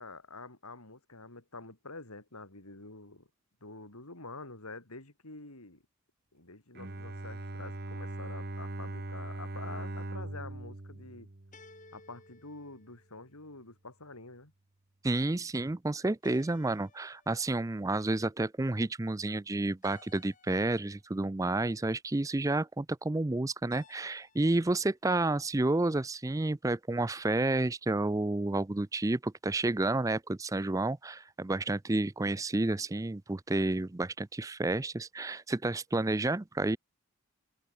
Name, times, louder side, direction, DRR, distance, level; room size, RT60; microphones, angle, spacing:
voice 1, 0.0-3.3 3.6-5.8 6.3-11.3 11.9-14.5, left 3 dB, 85° left, 5.1 m, -47 dB
Bowed string instrument, 6.7-12.0, right 2 dB, 45° right, 1.2 m, -40 dB
sound 1, 11.5-13.5 16.2-17.6 19.8-21.0 23.7-24.7, left 3 dB, 35° left, 4.6 m, -58 dB
voice 2, 15.0-36.8, right 2 dB, 15° right, 0.4 m, -30 dB
open air
head